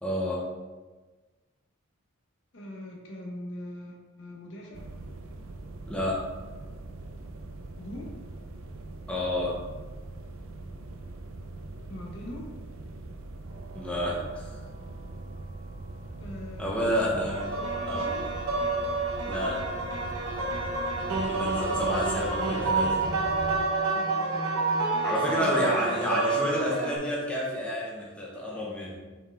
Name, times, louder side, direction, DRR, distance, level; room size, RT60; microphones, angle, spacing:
voice 1, 0.0-0.4 5.9-6.2 9.1-9.6 13.7-14.5 16.6-17.4 17.9-18.1 19.3-19.6 21.2-23.0 25.0-29.0, left 1 dB, 5° left, -5 dB, 0.9 m, -29 dB
voice 2, 2.5-4.9 7.8-8.2 11.9-12.5 16.2-18.3 23.9-24.3 25.2-26.0, left 1 dB, 55° left, 0 dB, 1.0 m, -41 dB
sound 1, 4.7-23.7, right 2 dB, 75° right, 0.6 m, -41 dB
sound 2, 16.7-27.0, right 3 dB, 90° right, 1.1 m, -29 dB
5.7 x 4.6 x 3.6 m, 1.3 s
head